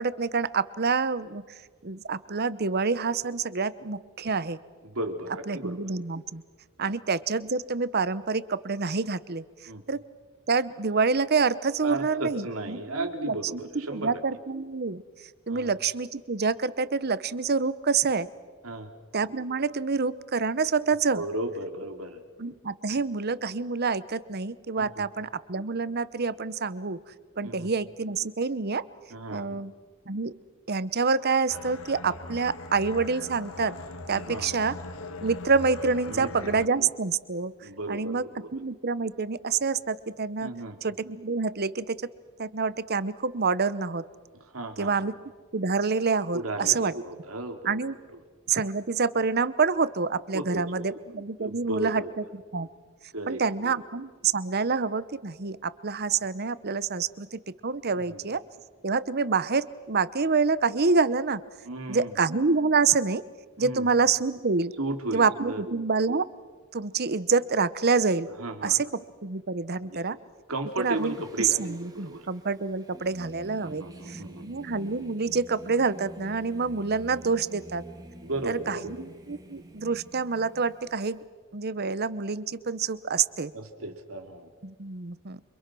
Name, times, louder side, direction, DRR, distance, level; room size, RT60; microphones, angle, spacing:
voice 1, 0.0-1.4 1.8-4.6 5.5-6.4 6.8-9.4 9.9-10.0 10.5-13.6 13.9-15.0 15.5-18.3 19.1-21.2 22.4-27.0 27.4-28.8 29.3-29.7 30.1-30.3 30.7-33.7 34.1-34.8 35.2-37.5 37.9-38.2 38.5-40.5 40.8-42.0 42.4-44.0 44.8-45.1 45.5-46.9 47.6-48.0 48.5-52.7 53.3-58.4 58.8-61.4 61.9-63.2 63.6-64.7 65.1-66.3 66.7-68.3 68.6-68.9 69.2-70.2 70.8-77.8 78.5-81.2 81.5-83.5 84.6-85.4, right 4 dB, 50° right, 16 dB, 0.9 m, -27 dB
voice 2, 4.8-5.8 6.8-6.9 9.7-9.8 11.8-14.1 15.5-15.7 18.6-18.9 21.2-22.2 24.8-25.0 27.4-27.7 29.1-29.6 34.3-34.5 36.1-36.7 37.6-38.5 40.4-40.8 44.5-45.1 46.3-47.8 48.1-48.2 50.3-50.8 51.4-52.1 53.1-53.7 58.1-58.2 61.6-62.1 63.6-63.9 64.8-65.6 68.4-68.8 69.8-70.1 70.5-72.3 73.6-74.5 78.2-79.0 83.5-84.5, right 2 dB, 75° right, 6 dB, 3.1 m, -35 dB
sound 1, 31.5-36.7, left 2 dB, 70° left, 1.7 m, -40 dB
Singing, 70.8-81.2, right 1 dB, 20° right, 2.4 m, -47 dB
29.0 x 25.5 x 6.2 m, 1.5 s
head